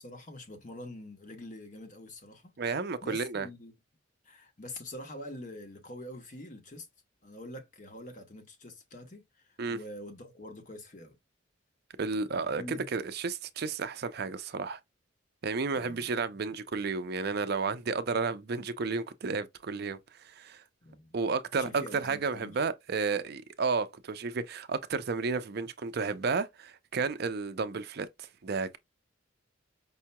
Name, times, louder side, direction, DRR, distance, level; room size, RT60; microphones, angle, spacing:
voice 1, 0.0-2.6 3.0-3.7 4.2-6.9 7.2-11.2 12.5-12.9 15.7-16.1 20.8-21.2 21.6-22.6, left 1 dB, 40° left, 1.1 m, -45 dB
voice 2, 2.6-3.5 9.6-9.8 12.0-14.8 15.4-20.6 21.1-28.8, right 4 dB, 55° right, 0.5 m, -32 dB
5.4 x 2.9 x 2.2 m
head